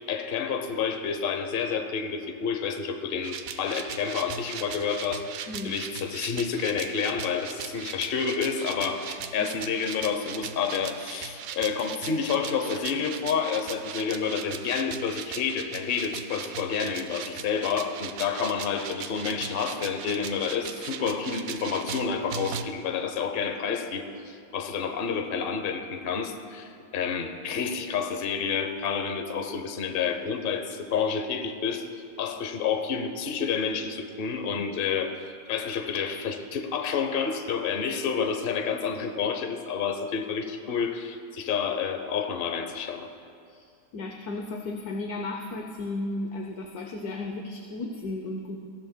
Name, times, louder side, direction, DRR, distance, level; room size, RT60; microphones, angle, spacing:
voice 1, 0.1-31.9 32.2-35.2 35.5-43.1, left 6 dB, 45° left, 6 dB, 0.8 m, -29 dB
sound 1, 3.2-22.6, right 8 dB, 70° right, 0.9 m, -39 dB
voice 2, 5.5-5.8 9.4-9.5 34.6-34.7 38.1-38.3 43.5-48.6, left 2 dB, 65° left, 2 dB, 1.3 m, -35 dB
19.0 x 15.5 x 2.2 m, 2.4 s
omnidirectional pair, 1.8 m